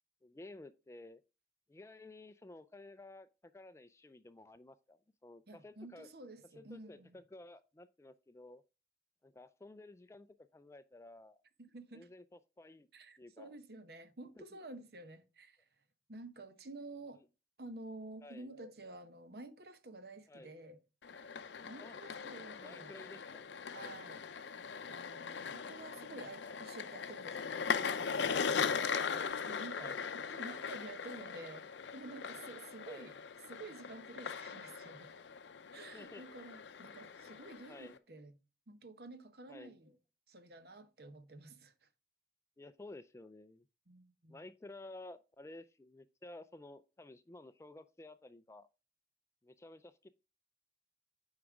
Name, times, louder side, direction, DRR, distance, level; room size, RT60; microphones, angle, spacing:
voice 1, 0.2-1.2 1.7-6.1 6.5-8.6 9.2-11.4 11.9-12.9 13.2-13.6 14.4-14.6 17.2-17.3 18.2-18.5 20.3-20.5 21.8-22.0 22.6-23.9 26.4-26.6 28.8-29.3 29.8-30.0 32.9-33.1 35.9-36.3 37.7-38.0 39.5-39.7 42.6-43.7 44.3-48.7 49.4-50.1, left 2 dB, 15° left, 0.3 m, -53 dB
voice 2, 5.5-7.1 11.6-12.1 12.9-15.6 16.1-17.2 17.6-20.8 21.1-21.3 21.6-23.0 23.7-24.6 24.9-28.6 29.4-31.6 31.9-33.1 33.5-35.1 35.7-38.3 38.7-39.9 40.3-41.9 43.9-44.4, right 2 dB, 60° right, 0.9 m, -51 dB
sound 1, 21.0-38.0, left 6 dB, 85° left, 0.6 m, -40 dB
8.5 x 4.9 x 3.5 m
head